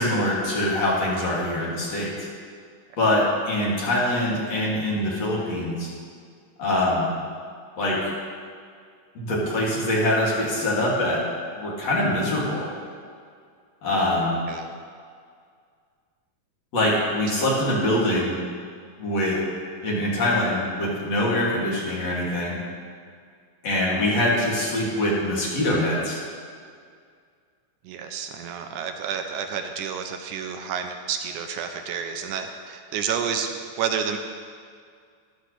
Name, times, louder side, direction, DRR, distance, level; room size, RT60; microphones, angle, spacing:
voice 1, 0.0-2.1 3.0-5.9 6.6-7.1 7.8-8.1 9.1-11.2 11.6-12.7 13.8-14.4 16.7-18.3 19.0-19.4 19.8-22.6 23.6-26.2, left 1 dB, 50° left, -6 dB, 3.5 m, -23 dB
voice 2, 27.8-34.2, right 7 dB, 80° right, 5 dB, 2.0 m, -30 dB
13.5 x 13.0 x 3.3 m, 2.1 s
omnidirectional pair, 3.9 m